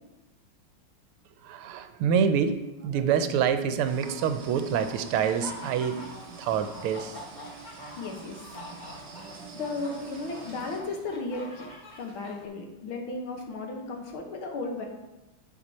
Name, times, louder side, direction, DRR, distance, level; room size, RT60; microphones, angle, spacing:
voice 1, 1.4-6.0 6.4-7.2, right 7 dB, 85° right, 9 dB, 1.6 m, -26 dB
sound 1, 3.8-10.8, right 4 dB, 45° right, 0.9 m, -45 dB
sound 2, 5.3-12.5, left 2 dB, 35° left, 0.7 m, -46 dB
voice 2, 8.0-8.4 9.5-11.7 12.0-14.9, left 3 dB, 70° left, 2 dB, 1.9 m, -35 dB
10.5 x 4.8 x 4.1 m, 1.1 s
omnidirectional pair, 2.4 m